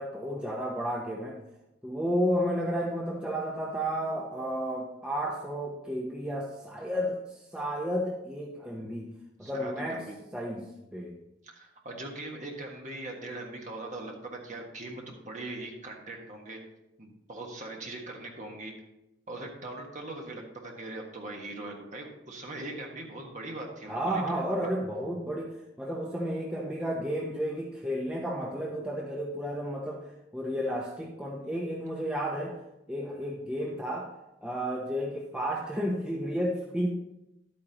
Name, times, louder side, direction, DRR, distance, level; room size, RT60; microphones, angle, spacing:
voice 1, 0.0-1.4 1.8-9.1 9.4-10.0 10.3-11.2 23.9-32.6 32.9-34.1 34.4-36.9, equal, 5° right, -2 dB, 0.7 m, -32 dB
voice 2, 9.4-10.2 11.4-16.6 17.0-18.7 19.3-24.7, right 2 dB, 35° right, 0 dB, 1.5 m, -41 dB
11.0 x 8.7 x 2.9 m, 0.91 s
head